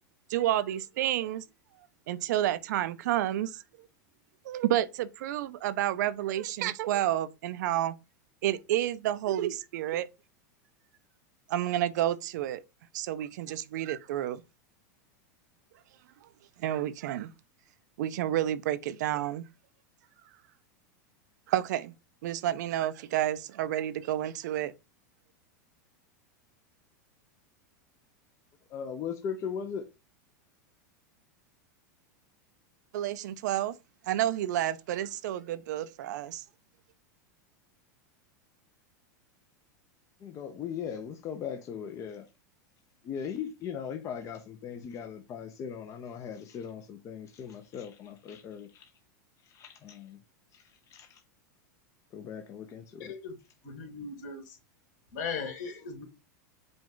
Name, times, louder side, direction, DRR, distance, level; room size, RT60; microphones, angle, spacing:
voice 1, 0.3-1.4 2.1-3.6 4.4-8.0 8.4-10.1 11.5-12.6 12.9-14.4 16.6-17.3 18.0-19.5 21.5-21.9 22.2-24.7 32.9-33.7 34.1-36.4, right 12 dB, 75° right, 0.4 m, -30 dB
voice 2, 28.7-29.9 40.2-42.2 43.0-48.9 49.5-50.2 50.5-50.6 50.9-51.2 52.1-53.1, left 7 dB, 35° left, 0.6 m, -39 dB
voice 3, 53.0-53.3 53.6-54.6 55.1-56.0, left 5 dB, 65° left, 2.1 m, -38 dB
5.1 x 2.3 x 3.8 m
hypercardioid pair, 120°, 10 cm